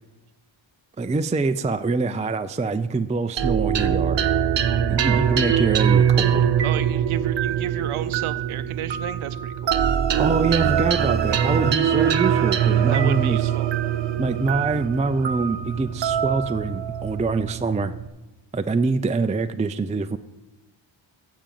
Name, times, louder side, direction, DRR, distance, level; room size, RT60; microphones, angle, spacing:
voice 1, 1.0-4.3 4.9-6.5 10.2-13.4 14.2-17.9 18.5-20.2, right 3 dB, 15° right, 9 dB, 0.3 m, -25 dB
sound 1, 3.4-18.1, right 9 dB, 60° right, 0.8 m, -22 dB
voice 2, 6.6-9.8 12.9-13.7, right 12 dB, 85° right, 12 dB, 0.6 m, -32 dB
sound 2, 12.3-17.4, left 4 dB, 70° left, 1.4 m, -45 dB
14.5 x 5.1 x 7.5 m, 1.1 s
wide cardioid pair, 140°, 48 cm